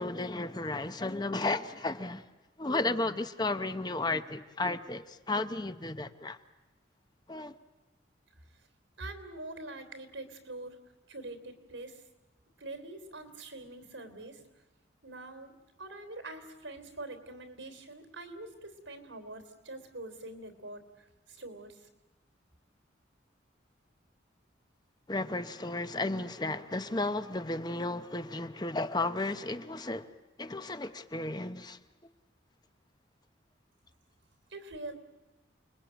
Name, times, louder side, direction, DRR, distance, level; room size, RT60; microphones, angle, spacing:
voice 1, 0.0-2.3 2.6-6.4 7.3-7.6 25.1-30.1 30.4-31.8, left 2 dB, 20° left, 0.8 m, -33 dB
voice 2, 9.0-10.8 11.1-12.1 12.6-14.5 15.0-21.9 34.5-34.9, right 2 dB, 85° right, 3.4 m, -44 dB
29.0 x 21.5 x 9.1 m
head